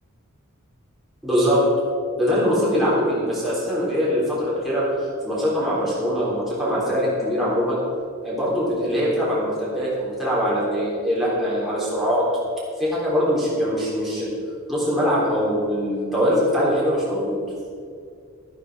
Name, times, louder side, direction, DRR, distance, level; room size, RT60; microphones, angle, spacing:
voice 1, 1.2-1.7 2.2-4.8 5.2-7.8 8.2-12.3 12.8-14.3 14.7-17.4, equal, ahead, -9 dB, 3.7 m, -22 dB
12.5 x 11.5 x 5.0 m, 2.2 s
head